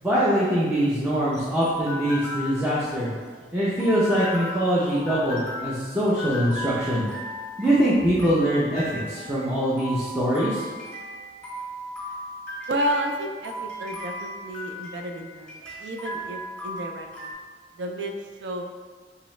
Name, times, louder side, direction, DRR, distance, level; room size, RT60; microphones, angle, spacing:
voice 1, 0.0-3.1 3.5-7.1 7.6-10.7, equal, 10° right, -9 dB, 0.6 m, -23 dB
sound 1, 0.6-17.3, equal, 5° left, 1.3 m, -36 dB
voice 2, 12.7-17.3 17.8-18.1 18.4-18.6, right 1 dB, 75° right, 3 dB, 0.4 m, -31 dB
3.8 x 3.0 x 3.1 m, 1.5 s
head